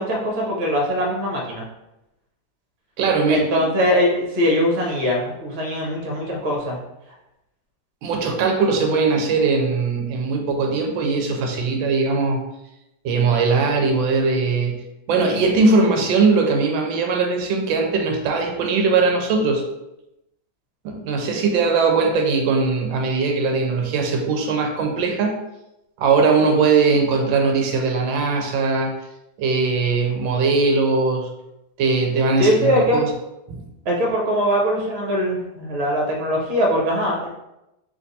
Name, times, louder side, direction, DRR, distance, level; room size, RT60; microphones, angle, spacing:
voice 1, 0.0-1.6 3.3-6.8 32.4-33.0 33.8-37.3, equal, 40° right, -2 dB, 1.0 m, -21 dB
voice 2, 3.0-3.6 8.0-12.4 13.0-14.8 15.1-19.6 20.8-25.3 26.0-28.9 29.4-31.3 31.8-33.1 33.5-33.7, right 4 dB, 85° right, 3 dB, 1.4 m, -20 dB
3.4 x 2.8 x 4.0 m, 0.90 s
omnidirectional pair, 2.1 m